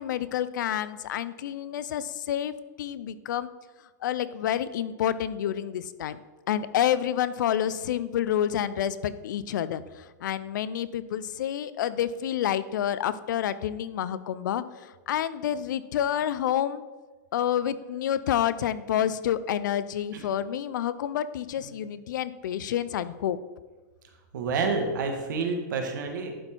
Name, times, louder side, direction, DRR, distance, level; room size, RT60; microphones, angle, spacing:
voice 1, 0.0-2.5 2.8-3.5 4.0-6.2 6.5-14.6 15.1-16.8 17.3-23.4, left 10 dB, 80° left, 15 dB, 0.5 m, -28 dB
voice 2, 24.3-26.3, right 4 dB, 85° right, 4 dB, 1.6 m, -29 dB
11.0 x 4.4 x 4.4 m, 1.3 s
supercardioid pair, 165°, 10 cm